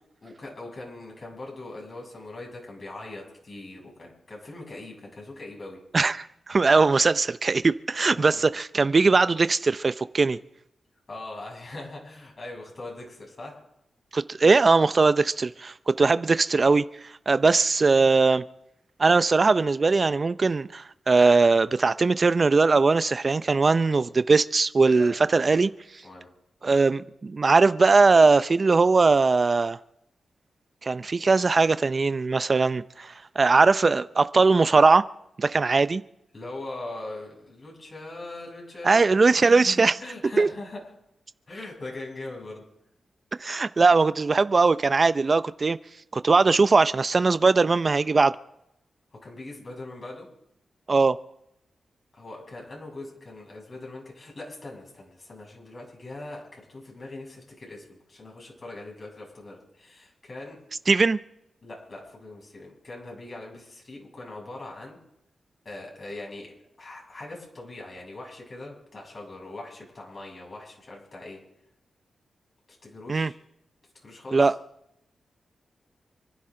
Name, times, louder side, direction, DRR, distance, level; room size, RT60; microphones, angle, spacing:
voice 1, 0.2-5.8 8.1-8.4 11.1-13.6 25.0-25.2 25.5-25.7 26.0-26.3 36.3-39.0 39.3-40.8 41.5-42.6 49.2-50.3 52.1-60.6 61.6-65.0 65.6-66.5 66.8-71.4 72.8-73.4 74.0-74.5, left 2 dB, 45° left, 7.1 m, -41 dB
voice 2, 5.9-10.4 14.1-18.4 19.0-25.7 26.6-29.8 30.8-35.1 35.4-36.0 38.8-40.0 40.4-40.5 43.4-45.8 46.1-48.3 50.9-51.2 60.9-61.2 73.1-73.3 74.3-74.5, right 4 dB, 45° right, 0.6 m, -20 dB
28.0 x 11.0 x 3.8 m
cardioid pair, 60°, 0 cm